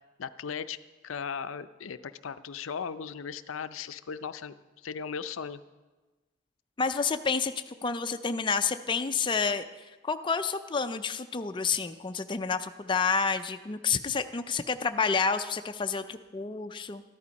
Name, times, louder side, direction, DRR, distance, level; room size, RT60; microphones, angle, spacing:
voice 1, 0.2-0.8 1.0-5.6, left 6 dB, 80° left, 13 dB, 0.5 m, -37 dB
voice 2, 6.8-9.6 10.0-17.0, left 5 dB, 25° left, 8 dB, 0.4 m, -29 dB
13.5 x 11.0 x 5.2 m, 1.2 s
head